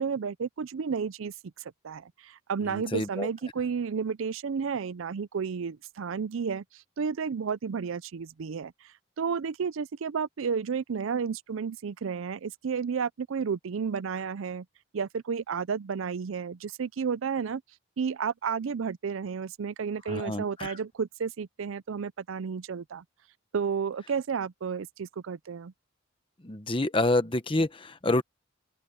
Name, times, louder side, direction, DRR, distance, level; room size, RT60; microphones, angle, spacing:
voice 1, 0.0-1.3 1.8-8.7 9.2-14.7 14.9-17.6 18.0-23.0 23.5-25.7, right 6 dB, 90° right, 0.5 m, -32 dB
voice 2, 2.7-3.3 20.1-20.8 26.4-28.2, left 2 dB, 25° left, 1.1 m, -28 dB
open air
head